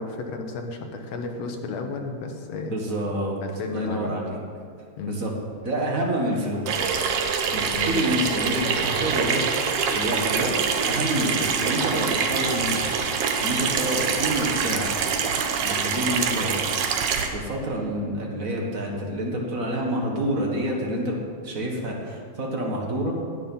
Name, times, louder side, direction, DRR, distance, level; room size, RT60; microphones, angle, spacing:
voice 1, 0.0-2.8 3.4-4.2 5.0-5.2 7.7-7.9, left 4 dB, 65° left, 4 dB, 2.1 m, -33 dB
voice 2, 2.7-3.3 3.6-4.4 5.1-5.3 5.6-6.8 7.5-9.4 9.9-14.9 15.6-16.6 17.3-23.2, right 1 dB, 40° right, -1 dB, 1.2 m, -28 dB
Water tap faucet / Sink (filling or washing), 6.7-17.3, right 6 dB, 70° right, 1.5 m, -25 dB
12.0 x 8.8 x 5.5 m, 2.2 s
omnidirectional pair, 3.5 m